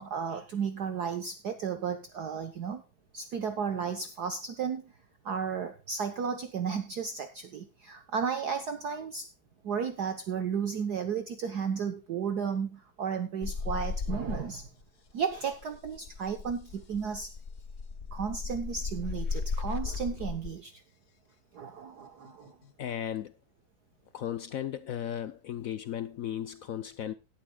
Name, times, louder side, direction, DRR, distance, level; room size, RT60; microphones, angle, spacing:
voice 1, 0.0-2.8 3.1-4.8 5.2-9.3 9.6-14.7 15.1-17.3 18.1-20.8 21.5-22.5, right 6 dB, 55° right, 1.4 m, -33 dB
sound 1, 13.4-14.8 15.1-20.5 22.3-22.7, left 4 dB, 50° left, 0.8 m, -36 dB
voice 2, 22.8-23.3 24.1-27.1, left 10 dB, 85° left, 0.7 m, -35 dB
17.5 x 11.0 x 2.3 m
omnidirectional pair, 2.3 m